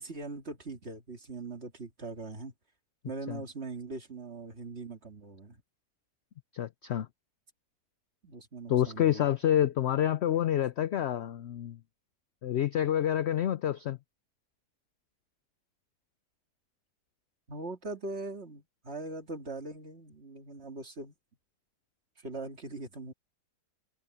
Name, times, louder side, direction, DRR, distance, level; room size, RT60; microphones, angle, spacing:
voice 1, 0.0-2.5 3.0-5.6 8.2-9.3 17.5-21.1 22.2-23.1, right 3 dB, 40° right, 2.4 m, -41 dB
voice 2, 6.5-7.1 8.7-11.8 12.4-14.0, left 11 dB, 75° left, 0.6 m, -28 dB
omnidirectional pair, 1.7 m